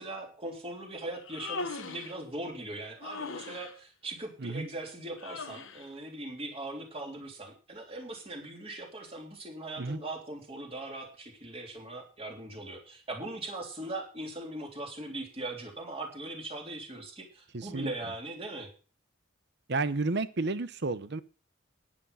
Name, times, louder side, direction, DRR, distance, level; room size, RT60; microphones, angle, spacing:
voice 1, 0.0-18.7, right 2 dB, 30° right, 1 dB, 3.4 m, -40 dB
Human voice, 1.1-2.2 3.0-3.7 5.2-5.9, left 4 dB, 70° left, 1.1 m, -39 dB
voice 2, 17.5-17.9 19.7-21.2, right 3 dB, 55° right, 14 dB, 0.9 m, -31 dB
11.0 x 10.5 x 5.6 m, 0.38 s
head